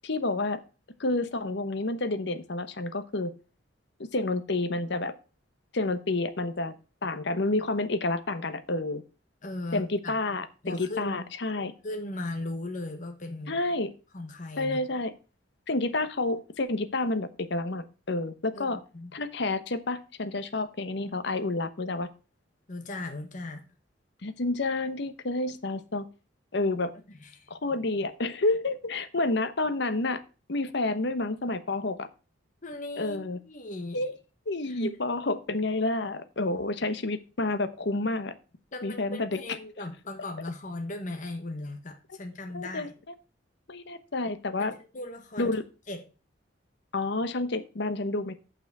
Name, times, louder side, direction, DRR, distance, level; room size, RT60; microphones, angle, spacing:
voice 1, 0.0-0.6 1.0-3.3 4.1-5.1 5.7-6.7 7.0-9.0 9.7-11.7 13.5-13.9 14.6-15.1 15.7-18.8 19.1-22.1 24.2-26.0 26.5-26.9 27.5-30.2 30.5-32.1 33.0-33.4 33.9-34.2 34.5-38.3 38.8-39.3 42.5-42.9 43.7-44.7 45.4-45.6 46.9-48.3, left 2 dB, 65° left, 11 dB, 0.9 m, -29 dB
voice 2, 9.4-10.1 10.6-11.2 11.8-13.6 14.1-14.8 18.5-19.1 22.7-23.6 27.1-27.5 32.6-34.1 34.7-35.0 38.7-42.9 44.6-45.6 45.9-46.0, left 2 dB, 45° left, 5 dB, 1.3 m, -37 dB
6.9 x 6.0 x 6.6 m, 0.34 s
head